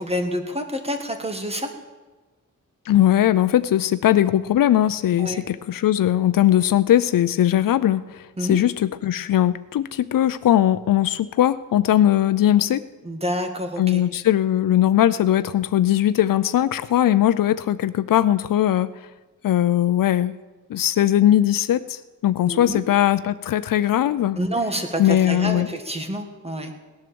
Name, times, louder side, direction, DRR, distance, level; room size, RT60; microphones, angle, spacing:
voice 1, 0.0-1.7 5.2-5.4 8.4-8.6 13.0-14.0 22.5-22.8 24.4-26.7, equal, 20° right, 5 dB, 1.8 m, -28 dB
voice 2, 2.9-12.8 13.8-18.9 19.4-20.3 20.7-24.4 25.0-25.7, left 12 dB, 90° left, 14 dB, 0.5 m, -19 dB
17.5 x 11.0 x 7.0 m, 1.2 s
wide cardioid pair, 140°, 32 cm